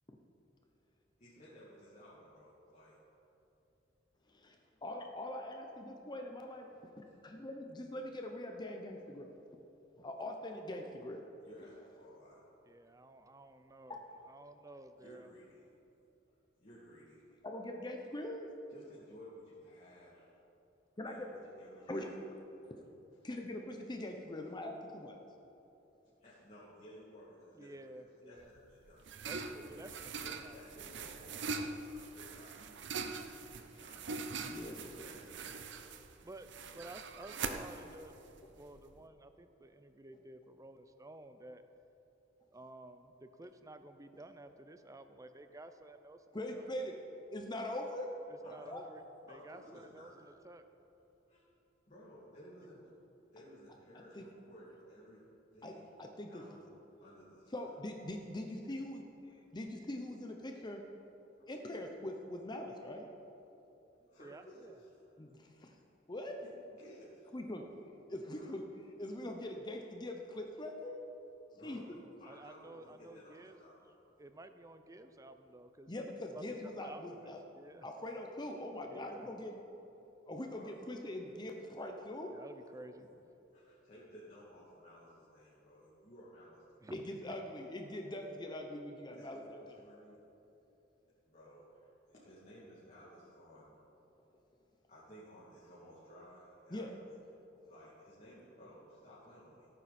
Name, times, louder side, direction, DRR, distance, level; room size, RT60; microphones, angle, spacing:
voice 1, 1.2-3.0 7.0-7.4 11.4-12.5 15.0-15.6 16.3-17.2 18.7-20.3 21.0-22.1 26.2-29.7 30.2-32.8 33.6-34.2 34.6-36.1 48.4-48.7 49.3-50.3 51.3-51.5 51.9-52.9 53.3-55.9 56.3-56.6 57.0-57.7 61.4-61.5 64.1-65.1 66.4-67.3 68.4-68.5 71.5-71.9 72.2-73.9 80.4-80.9 83.0-83.1 83.5-86.9 89.1-90.2 91.3-93.8 94.9-97.2 97.6-99.7, equal, 40° left, -9 dB, 2.5 m, -57 dB
voice 2, 4.3-6.7 7.0-9.3 10.0-11.3 11.7-11.8 13.9-14.0 17.4-18.5 21.0-21.3 21.9-22.1 23.2-25.2 34.4-34.8 46.3-46.9 47.3-48.1 48.7-48.8 54.2-54.3 55.6-56.4 57.5-59.0 59.5-60.8 61.5-63.1 65.2-65.7 66.1-66.4 67.3-67.6 68.1-68.6 69.0-71.0 71.6-71.8 75.9-77.4 77.8-79.6 80.3-82.3 86.9-89.6 96.7-96.9, left 1 dB, 25° left, 3 dB, 0.8 m, -42 dB
voice 3, 12.7-14.0 14.3-15.3 27.5-28.5 29.2-30.6 36.2-38.2 38.5-41.6 42.5-46.7 48.3-49.0 49.3-50.1 50.4-50.6 64.2-64.8 72.3-73.6 74.2-77.9 78.9-79.3 82.3-83.1 86.8-87.1, right 2 dB, 15° right, 9 dB, 0.6 m, -53 dB
sound 1, 28.4-39.0, right 4 dB, 65° right, 0.7 m, -43 dB
16.5 x 9.2 x 4.3 m, 3.0 s
head